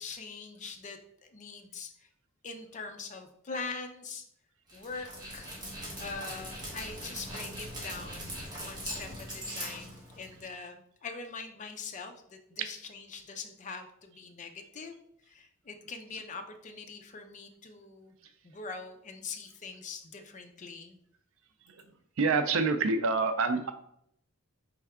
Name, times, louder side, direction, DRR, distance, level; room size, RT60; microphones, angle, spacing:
voice 1, 0.0-2.1 2.4-4.2 4.7-5.5 6.0-15.0 15.3-18.1 18.4-21.0, left 4 dB, 35° left, 5 dB, 0.5 m, -43 dB
Dog, 4.7-10.5, equal, 20° right, 1.4 m, -41 dB
voice 2, 22.2-23.7, right 4 dB, 65° right, 8 dB, 0.5 m, -26 dB
4.5 x 3.4 x 3.5 m, 0.72 s
head